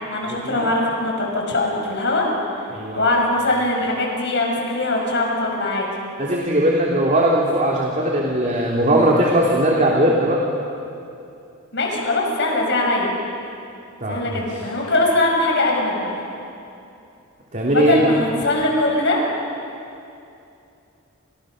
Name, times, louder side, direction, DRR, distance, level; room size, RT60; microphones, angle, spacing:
voice 1, 0.1-2.3 2.9-5.9 11.7-13.1 14.1-16.2 17.7-19.2, left 2 dB, 60° left, 0 dB, 6.7 m, -21 dB
voice 2, 2.7-3.1 6.2-10.4 14.0-14.4 17.5-18.0, right 1 dB, 40° right, -2 dB, 3.2 m, -19 dB
30.0 x 29.0 x 6.6 m, 2.6 s
head